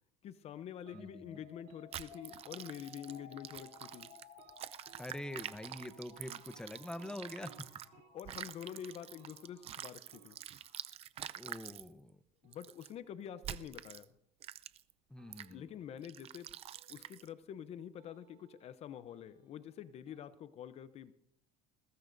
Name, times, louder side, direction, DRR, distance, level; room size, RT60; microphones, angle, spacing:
voice 1, 0.2-4.1 8.1-10.4 12.4-14.1 15.5-16.5 16.9-21.1, left 9 dB, 45° left, 14 dB, 0.7 m, -47 dB
sound 1, 0.8-1.0 1.3-1.8 2.1-2.3 2.6-2.7 3.1-3.3 3.6-4.1 4.4-4.5 4.9-5.0 5.3-5.5 5.8-5.9 6.4-7.6 7.9-8.1 8.4-8.9 9.2-9.3 9.6-9.8 10.1-10.3 12.4-13.2 15.2-15.9 16.7-17.6 18.0-18.8 19.1-20.3, right 11 dB, 75° right, 3.3 m, -64 dB
sound 2, 0.9-10.9, left 6 dB, 65° left, 3.6 m, -59 dB
voice 2, 0.9-1.4 5.0-7.7 11.4-12.2 15.1-15.7, left 1 dB, 5° left, 12 dB, 0.8 m, -45 dB
sound 3, 1.9-7.9 8.2-11.9 12.5-12.9 13.4-14.0 14.4-14.9 15.3-15.5 16.0-17.3, right 11 dB, 40° right, 0.6 m, -47 dB
21.5 x 18.0 x 2.6 m, 0.75 s
cardioid pair, 120°, 15 cm